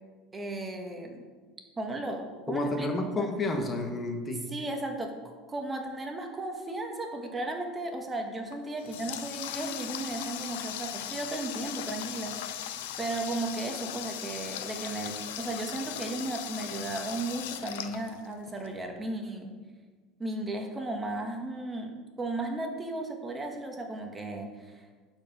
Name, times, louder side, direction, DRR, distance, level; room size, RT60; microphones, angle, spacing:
voice 1, 0.3-1.2 1.8-2.9 3.2-3.3 4.5-5.1 5.5-19.5 20.2-24.8, right 2 dB, 20° right, 3 dB, 1.3 m, -35 dB
voice 2, 2.5-4.5, left 2 dB, 25° left, 4 dB, 1.2 m, -30 dB
Water tap faucet, 8.5-18.7, left 11 dB, 85° left, 0.6 m, -38 dB
11.5 x 4.7 x 5.3 m, 1.4 s
supercardioid pair, 110°, 0 cm